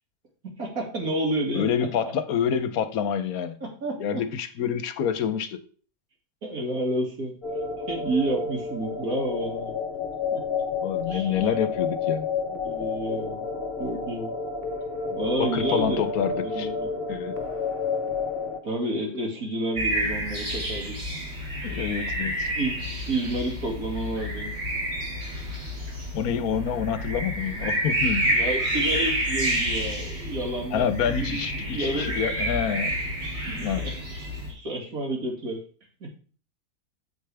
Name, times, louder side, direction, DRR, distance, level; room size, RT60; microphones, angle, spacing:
voice 1, 0.6-2.1 3.6-4.2 6.4-7.3 7.9-9.8 10.3-10.4 11.1-11.5 12.5-13.5 13.8-14.3 15.1-16.1 16.4-17.0 18.6-21.0 22.6-22.8 23.1-24.5 28.3-32.2 33.4-35.6 36.0-36.2, right 1 dB, 70° right, 0 dB, 2.8 m, -30 dB
voice 2, 1.5-3.6 4.0-5.6 10.8-12.3 15.4-16.7 17.1-17.4 21.6-22.5 26.1-28.4 30.7-32.9 33.5-33.8, left 8 dB, 75° left, 11 dB, 1.2 m, -27 dB
sound 1, 7.4-18.6, left 5 dB, 45° left, 1.2 m, -30 dB
sound 2, 19.8-34.5, right 1 dB, 45° right, 2.7 m, -29 dB
8.3 x 7.9 x 3.4 m, 0.41 s
omnidirectional pair, 1.6 m